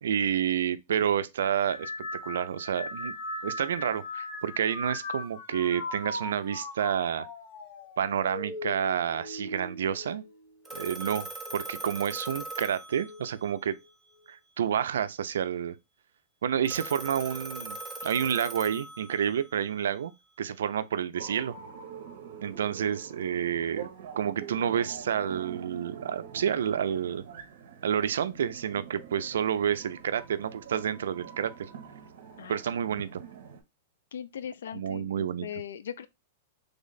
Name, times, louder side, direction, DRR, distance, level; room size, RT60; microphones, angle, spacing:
voice 1, 0.0-1.9 2.2-3.1 3.4-7.3 8.0-10.2 10.7-11.3 11.5-13.8 14.3-15.8 16.4-20.1 20.4-21.5 22.4-23.9 24.2-27.2 27.8-31.7 32.5-33.2 34.7-35.5, right 8 dB, 85° right, 0.3 m, -29 dB
sound 1, 1.4-11.0 11.4-12.0 13.0-13.4, left 2 dB, 50° left, 0.8 m, -40 dB
Telephone, 10.7-13.5 16.7-19.5, right 2 dB, 5° right, 0.4 m, -40 dB
sound 2, 21.1-33.6, right 7 dB, 60° right, 0.7 m, -45 dB
voice 2, 34.1-36.1, left 9 dB, 80° left, 0.4 m, -39 dB
3.3 x 2.1 x 3.8 m
supercardioid pair, 165°, 0 cm